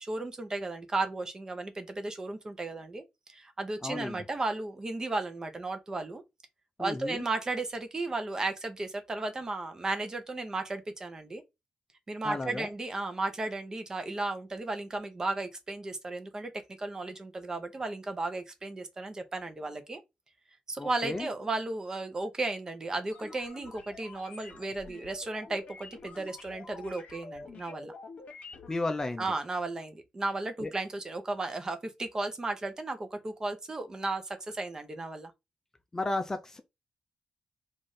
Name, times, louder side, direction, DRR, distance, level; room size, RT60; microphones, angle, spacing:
voice 1, 0.0-3.0 3.3-6.2 6.8-11.4 12.1-16.5 16.8-20.0 20.7-27.9 29.2-35.3, right 2 dB, 25° right, 0.7 m, -34 dB
voice 2, 3.8-4.2 6.8-7.2 12.2-12.7 20.8-21.3 28.7-29.2 30.6-30.7 35.9-36.6, left 2 dB, 20° left, 0.4 m, -33 dB
sound 1, 23.1-29.0, left 3 dB, 60° left, 1.1 m, -48 dB
3.9 x 2.5 x 3.2 m
cardioid pair, 110°, 2 cm